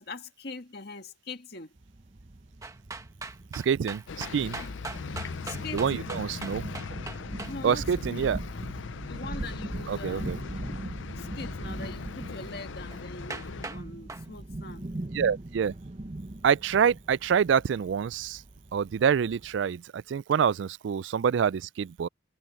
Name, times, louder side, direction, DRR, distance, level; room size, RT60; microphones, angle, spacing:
voice 1, 0.0-1.7 4.6-4.8 5.4-6.1 7.5-8.4 9.0-10.4 11.2-14.9, left 3 dB, 55° left, 1.8 m, -42 dB
sound 1, 1.8-19.6, right 1 dB, 35° right, 0.7 m, -41 dB
sound 2, 2.6-7.5 12.9-13.0 13.3-13.8 14.1-14.3, right 3 dB, 15° right, 1.3 m, -39 dB
voice 2, 3.5-4.6 5.7-6.6 7.6-8.4 9.9-10.4 15.1-15.7 16.4-18.4 18.7-22.1, right 7 dB, 75° right, 0.3 m, -26 dB
sound 3, 4.1-13.7, left 5 dB, 85° left, 0.5 m, -40 dB
head